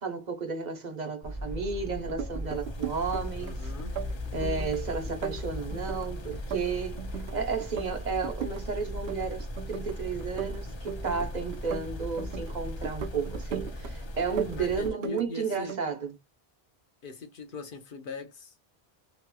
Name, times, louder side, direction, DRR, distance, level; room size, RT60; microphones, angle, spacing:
voice 1, 0.0-3.5 4.3-7.0 7.3-16.1, right 5 dB, 45° right, 0.9 m, -33 dB
sound 1, 1.2-14.9, left 1 dB, 40° left, 0.4 m, -37 dB
sound 2, 2.0-3.5 3.8-4.8 5.1-7.3 7.6-8.6 8.9-9.9 10.2-12.5 12.8-13.9 14.2-15.2 15.5-15.9, right 8 dB, 80° right, 0.8 m, -38 dB
voice 2, 3.4-3.9 14.5-15.8 17.0-18.7, left 2 dB, 60° left, 0.9 m, -41 dB
2.9 x 2.9 x 2.2 m
omnidirectional pair, 1.0 m